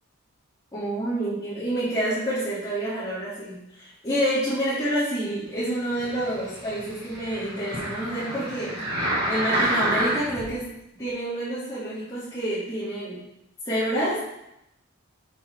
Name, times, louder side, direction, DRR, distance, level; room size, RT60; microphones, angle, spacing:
voice 1, 0.7-8.7 9.3-10.7 11.0-13.2 13.6-14.2, right 1 dB, 15° left, -15 dB, 3.1 m, -28 dB
sound 1, 5.9-10.5 11.1-11.2, right 1 dB, 45° right, 2.5 m, -28 dB
8.7 x 6.6 x 3.9 m, 0.85 s
head